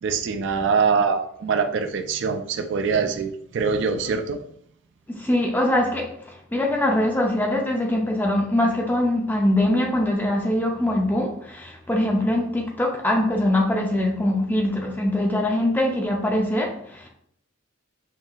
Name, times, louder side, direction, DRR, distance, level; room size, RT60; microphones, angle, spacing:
voice 1, 0.0-4.4, right 5 dB, 60° right, 0.3 m, -23 dB
voice 2, 5.1-17.1, left 1 dB, 10° left, 0.4 m, -23 dB
5.6 x 2.6 x 2.4 m
head